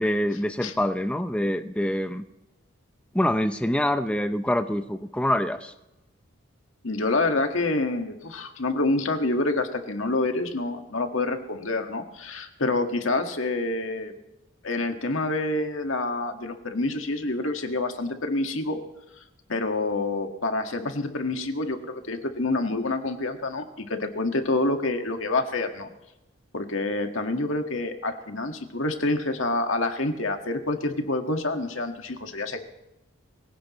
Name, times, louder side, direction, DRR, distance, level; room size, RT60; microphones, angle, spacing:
voice 1, 0.0-2.2 3.1-5.7, left 1 dB, 5° left, 7 dB, 0.5 m, -25 dB
voice 2, 6.8-14.1 14.6-18.8 19.5-25.9 26.5-32.6, left 2 dB, 75° left, 5 dB, 1.8 m, -27 dB
23.5 x 17.0 x 3.1 m, 0.95 s
head